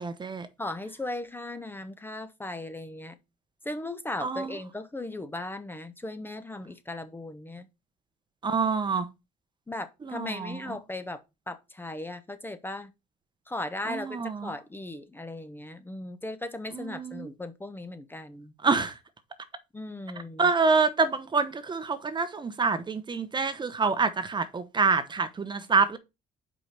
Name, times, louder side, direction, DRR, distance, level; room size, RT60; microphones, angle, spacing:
voice 1, 0.0-0.5 4.2-4.6 8.4-9.1 10.0-10.6 13.9-14.5 16.7-17.3 18.6-18.9 20.4-26.0, right 4 dB, 25° right, 0.9 m, -27 dB
voice 2, 0.6-3.2 3.6-7.7 9.7-11.2 11.5-12.9 13.5-18.5 19.7-20.5, left 2 dB, 10° left, 0.8 m, -37 dB
5.3 x 4.8 x 5.8 m
cardioid pair, 110°, 17 cm